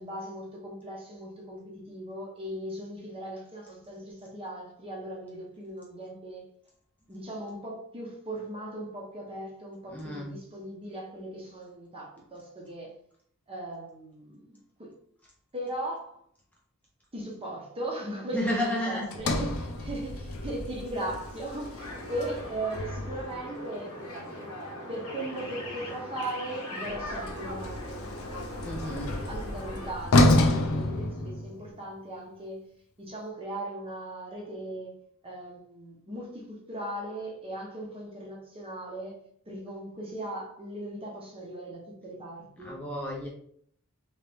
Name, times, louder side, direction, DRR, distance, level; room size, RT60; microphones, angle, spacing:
voice 1, 0.0-6.5 7.1-12.9 13.5-14.9 15.5-16.2 17.1-23.9 24.9-32.6 33.0-34.9 35.2-39.2 39.5-42.8, right 1 dB, 25° right, 0.9 m, -38 dB
voice 2, 9.9-10.3 18.3-19.1 28.6-29.1 42.6-43.3, left 1 dB, 5° left, 0.6 m, -31 dB
Sliding door, 19.1-23.4 26.8-31.8, left 1 dB, 70° left, 0.5 m, -29 dB
sound 1, 21.8-29.9, left 1 dB, 90° left, 1.1 m, -40 dB
3.2 x 3.0 x 3.4 m
head